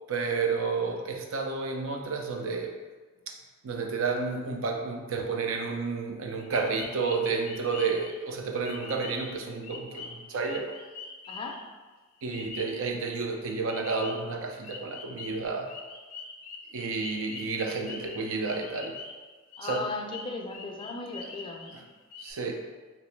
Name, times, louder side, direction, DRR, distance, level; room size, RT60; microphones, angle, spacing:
voice 1, 0.1-2.7 3.3-3.4 3.6-10.7 12.2-15.7 16.7-18.9 19.6-19.9 22.2-22.6, right 4 dB, 65° right, 2 dB, 0.4 m, -31 dB
sound 1, 6.4-8.2 8.6-9.4 9.6-11.6 12.3-12.8 13.7-14.3 14.6-19.3 19.5-21.8 22.1-22.3, left 4 dB, 70° left, 0.5 m, -44 dB
voice 2, 11.3-11.6 19.6-21.8, left 3 dB, 25° left, 1 dB, 0.3 m, -36 dB
3.0 x 3.0 x 3.1 m, 1.3 s
head